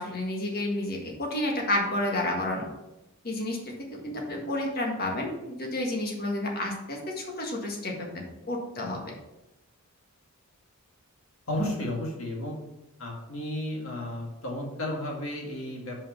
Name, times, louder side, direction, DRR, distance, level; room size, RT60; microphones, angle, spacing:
voice 1, 0.0-2.7 3.2-3.6 4.0-9.1, left 1 dB, 45° left, 0 dB, 1.6 m, -30 dB
voice 2, 11.5-12.6 13.0-16.0, left 1 dB, 65° left, -1 dB, 2.0 m, -33 dB
5.5 x 5.2 x 5.7 m, 0.94 s
head